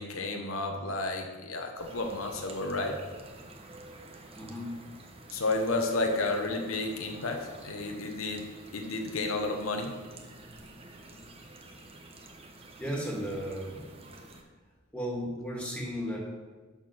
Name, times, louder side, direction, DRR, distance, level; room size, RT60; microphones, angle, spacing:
voice 1, 0.0-3.0 5.3-8.5 8.7-10.0, left 2 dB, 80° left, 3 dB, 1.1 m, -31 dB
sound 1, 1.8-14.4, right 2 dB, 30° right, 1.0 m, -50 dB
voice 2, 4.3-4.8 12.8-13.9 14.9-16.2, equal, 5° left, -2 dB, 2.1 m, -35 dB
11.0 x 4.5 x 6.1 m, 1.4 s
head